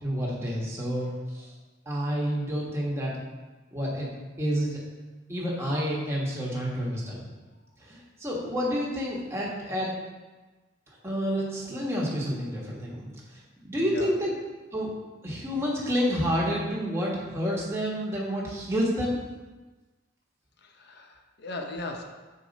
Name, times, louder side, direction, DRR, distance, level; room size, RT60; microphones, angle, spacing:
voice 1, 0.0-1.1 1.3-1.5 1.9-3.1 3.7-4.1 4.4-4.8 5.3-7.2 7.8-9.9 11.0-14.3 14.7-14.9 15.2-19.2, equal, 15° right, -5 dB, 1.3 m, -29 dB
voice 2, 13.8-14.2 20.6-22.0, left 2 dB, 55° left, 3 dB, 0.7 m, -38 dB
6.6 x 4.5 x 4.0 m, 1.2 s
head